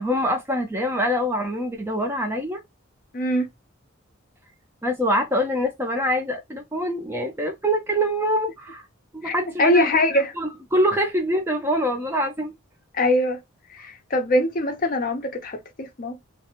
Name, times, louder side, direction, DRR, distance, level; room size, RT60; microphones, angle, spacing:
voice 1, 0.0-2.6 4.8-8.8 9.1-10.0 10.4-12.5, equal, 10° right, 0.4 m, -24 dB
voice 2, 3.1-3.5 9.2-10.3 12.9-13.4 13.7-16.2, left 1 dB, 40° left, 0.5 m, -23 dB
2.4 x 2.0 x 2.8 m
head